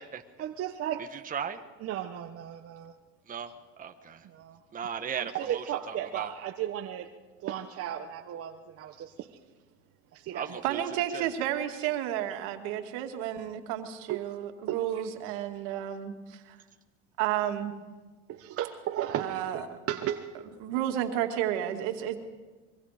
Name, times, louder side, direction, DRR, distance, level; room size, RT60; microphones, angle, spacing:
voice 1, 0.4-1.1 1.8-2.9 4.2-4.6 5.2-7.1 7.4-9.3 10.1-10.6 14.1-14.2 14.7-15.0 18.3-20.4, right 11 dB, 45° right, 5 dB, 1.3 m, -35 dB
voice 2, 1.1-1.6 3.3-3.5 3.8-4.2 4.7-6.3 10.3-10.8 11.1-11.3, right 7 dB, 25° right, 6 dB, 1.4 m, -37 dB
voice 3, 10.6-16.6 17.2-17.7 19.1-19.6 20.6-22.2, right 11 dB, 70° right, 5 dB, 2.5 m, -31 dB
24.5 x 23.5 x 5.1 m, 1.3 s
supercardioid pair, 105°, 34 cm